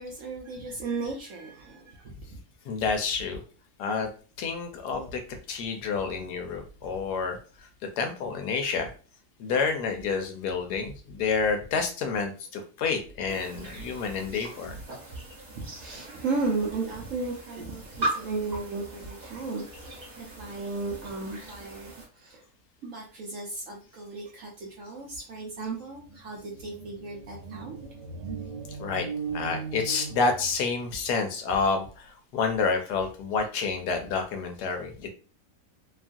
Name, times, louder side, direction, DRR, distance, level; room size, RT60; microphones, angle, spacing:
voice 1, 0.0-2.4 15.5-22.4 22.8-27.8 28.1-28.3, right 3 dB, 65° right, -1 dB, 0.8 m, -35 dB
voice 2, 2.6-3.4 3.8-4.1 4.4-5.2 5.5-7.4 8.0-8.9 9.4-14.8 28.8-29.1 29.3-35.1, left 5 dB, 75° left, 5 dB, 1.2 m, -29 dB
sound 1, 13.3-22.1, right 2 dB, 30° right, 0.8 m, -39 dB
sound 2, 25.5-25.6 25.9-30.9, right 6 dB, 85° right, 1.3 m, -38 dB
3.0 x 2.3 x 2.5 m, 0.38 s
omnidirectional pair, 1.8 m